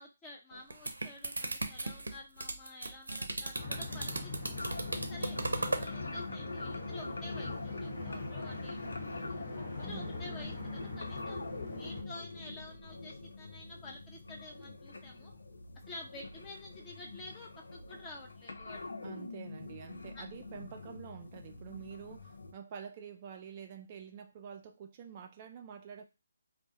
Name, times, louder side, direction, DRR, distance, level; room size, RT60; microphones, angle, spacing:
voice 1, 0.0-4.3 4.8-9.0 9.7-11.5 11.8-15.3 15.9-18.9 20.1-20.2, left 2 dB, 15° left, 0.7 m, -50 dB
sound 1, 0.5-5.9, right 2 dB, 80° right, 0.6 m, -37 dB
sound 2, 3.5-12.0, left 2 dB, 50° left, 1.1 m, -42 dB
sound 3, 4.6-22.5, left 3 dB, 75° left, 0.4 m, -45 dB
voice 2, 9.8-10.2 19.0-26.0, right 8 dB, 35° right, 0.3 m, -48 dB
2.2 x 2.0 x 2.8 m
figure-of-eight pair, 145°, 0 cm